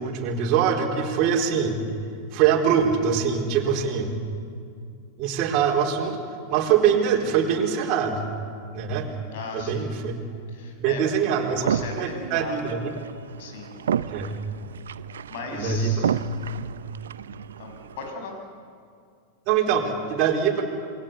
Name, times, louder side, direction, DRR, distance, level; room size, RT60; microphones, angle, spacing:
voice 1, 0.0-1.8 2.3-4.1 5.2-6.2 6.5-8.2 8.7-9.1 9.5-10.1 10.8-11.7 12.0-12.9 14.1-14.3 15.5-16.1 19.5-20.6, right 7 dB, 45° right, -1 dB, 4.2 m, -23 dB
voice 2, 9.3-9.9 10.5-12.8 13.4-13.8 15.3-16.2 17.6-18.4, left 3 dB, 60° left, 3 dB, 6.4 m, -37 dB
sound 1, 11.5-18.1, right 8 dB, 75° right, 0.7 m, -32 dB
28.0 x 22.0 x 8.5 m, 2.3 s
figure-of-eight pair, 95°, 0 cm